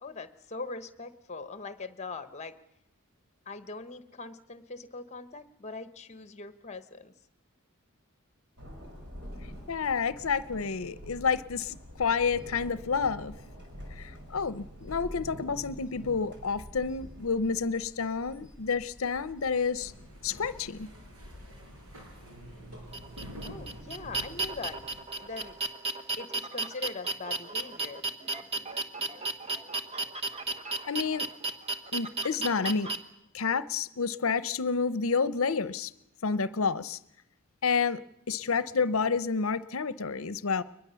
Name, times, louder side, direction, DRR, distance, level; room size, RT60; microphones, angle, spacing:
voice 1, 0.0-2.5 3.5-7.1 23.4-24.8 25.2-25.6 26.2-28.0, left 3 dB, 30° left, 12 dB, 1.1 m, -41 dB
Thunder, 8.6-25.6, equal, 55° right, 5.2 m, -48 dB
voice 2, 9.7-13.3 14.0-19.9 20.2-20.9 30.9-31.3 31.9-32.9 33.3-35.9 36.2-37.0 37.6-38.0 38.3-40.6, left 5 dB, 70° left, 16 dB, 0.7 m, -29 dB
sound 1, 19.8-25.0, equal, 80° right, 5.4 m, -48 dB
sound 2, 22.9-33.0, right 2 dB, 30° right, 1.2 m, -33 dB
22.5 x 21.0 x 7.0 m, 0.82 s
head